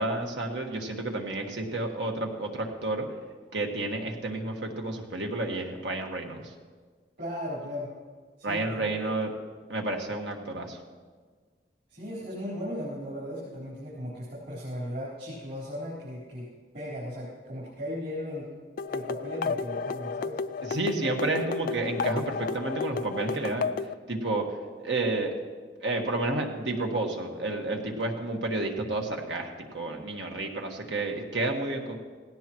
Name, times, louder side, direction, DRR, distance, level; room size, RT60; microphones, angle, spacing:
voice 1, 0.0-3.1 3.5-6.5 8.4-9.3 9.7-10.8 20.7-23.7 24.1-24.5 24.8-25.3 25.8-32.0, right 2 dB, 85° right, 2 dB, 1.7 m, -30 dB
voice 2, 7.2-7.9 8.4-9.1 11.9-16.5 16.7-18.5 18.9-20.4, equal, 65° right, -9 dB, 4.1 m, -37 dB
sound 1, 18.8-23.9, left 5 dB, 50° left, 0.3 m, -32 dB
17.5 x 17.0 x 3.1 m, 1.5 s
head